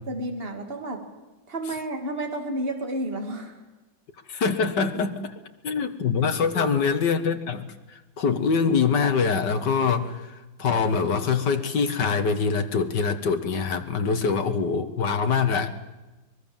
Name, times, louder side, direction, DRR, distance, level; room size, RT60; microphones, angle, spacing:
voice 1, 0.1-1.0 1.5-3.6 6.5-6.9, right 1 dB, 30° right, 4 dB, 2.9 m, -31 dB
voice 2, 4.3-5.3 5.6-15.7, left 5 dB, 65° left, 8 dB, 2.2 m, -24 dB
23.5 x 21.0 x 7.4 m, 1.1 s
omnidirectional pair, 2.1 m